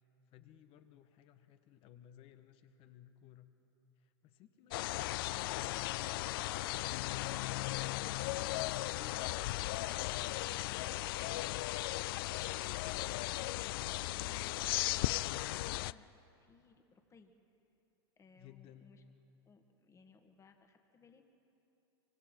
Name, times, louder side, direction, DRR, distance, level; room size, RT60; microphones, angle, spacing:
voice 1, 0.3-3.5 4.0-6.5 18.4-18.9, left 11 dB, 45° left, 9 dB, 1.3 m, -60 dB
sound 1, 4.7-15.9, left 18 dB, 60° left, 0.4 m, -36 dB
voice 2, 15.6-16.1 16.4-17.3 18.2-19.0 19.5-21.2, left 4 dB, 20° left, 5 dB, 1.8 m, -62 dB
25.0 x 24.5 x 4.6 m, 3.0 s
hypercardioid pair, 100°, 13 cm